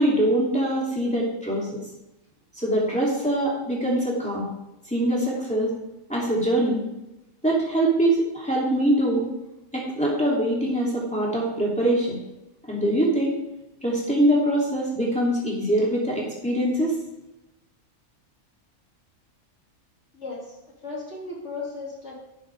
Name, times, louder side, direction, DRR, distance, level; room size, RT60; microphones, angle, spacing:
voice 1, 0.0-1.8 2.6-4.5 4.9-5.7 6.1-6.8 7.4-9.3 9.7-12.2 12.7-13.4 13.8-17.0, right 1 dB, 5° left, -6 dB, 3.0 m, -23 dB
voice 2, 20.1-20.5 20.8-22.2, left 3 dB, 55° left, -5 dB, 3.4 m, -35 dB
11.5 x 8.9 x 3.6 m, 0.94 s
omnidirectional pair, 1.4 m